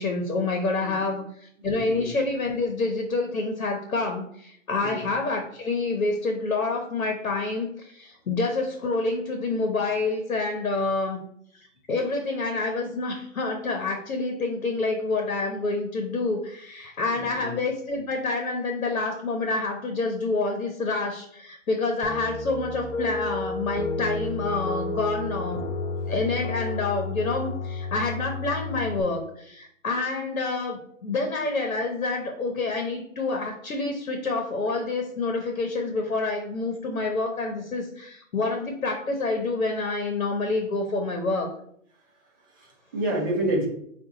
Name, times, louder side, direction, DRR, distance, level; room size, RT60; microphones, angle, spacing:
voice 1, 0.0-11.2 11.9-25.7 26.1-41.5, left 3 dB, 80° left, 4 dB, 1.0 m, -28 dB
voice 2, 1.6-2.1 4.8-5.1 17.2-17.5 42.5-43.7, right 1 dB, 15° right, -2 dB, 0.6 m, -29 dB
sound 1, 22.0-29.0, left 2 dB, 55° left, 0.6 m, -31 dB
5.1 x 2.5 x 4.0 m, 0.69 s
hypercardioid pair, 150°, 40 cm